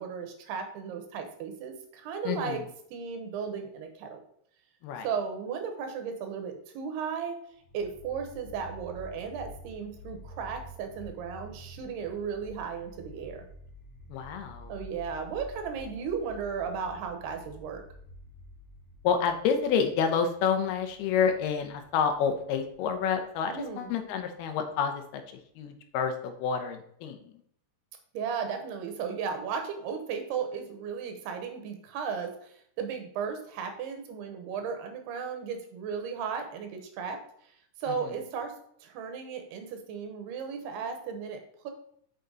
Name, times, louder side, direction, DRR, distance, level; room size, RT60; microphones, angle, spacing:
voice 1, 0.0-2.6 2.9-4.2 5.0-7.4 7.7-13.4 14.7-17.8 23.5-23.9 28.1-37.2 37.8-38.5 38.8-41.7, right 6 dB, 85° right, 6 dB, 3.2 m, -35 dB
voice 2, 2.2-2.7 4.8-5.1 14.1-14.7 19.0-25.2 25.6-27.3 38.0-38.1, left 6 dB, 85° left, 7 dB, 2.8 m, -29 dB
sound 1, 7.6-24.6, equal, 40° left, 3.2 m, -49 dB
6.7 x 6.5 x 4.0 m, 0.65 s
omnidirectional pair, 4.5 m